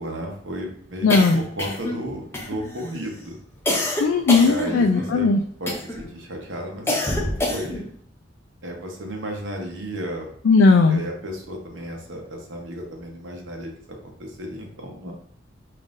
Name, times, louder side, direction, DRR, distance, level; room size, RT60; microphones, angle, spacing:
voice 1, 0.0-1.1 1.4-3.4 4.4-5.3 5.6-7.9 8.6-10.3 10.9-15.1, equal, 80° right, 1 dB, 0.9 m, -33 dB
voice 2, 1.0-1.4 4.0-5.4 10.4-11.0, left 4 dB, 80° left, 3 dB, 0.4 m, -17 dB
sound 1, 1.1-2.0 2.3-2.9 3.7-5.1 5.7-6.1 6.9-7.9, left 1 dB, 15° left, 0.6 m, -26 dB
5.3 x 2.5 x 2.5 m, 0.63 s
head